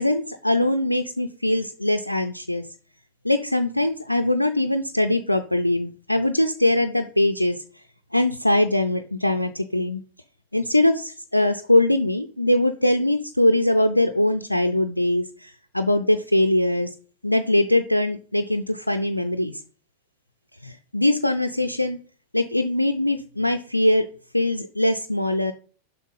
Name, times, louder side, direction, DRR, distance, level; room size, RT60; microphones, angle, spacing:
voice 1, 0.0-2.7 3.2-7.6 8.1-10.0 10.5-16.9 17.2-19.6 20.6-22.0 22.3-24.1 24.3-25.5, left 1 dB, 85° left, 7 dB, 0.5 m, -22 dB
7.3 x 5.7 x 5.4 m, 0.42 s
figure-of-eight pair, 90°, 0 cm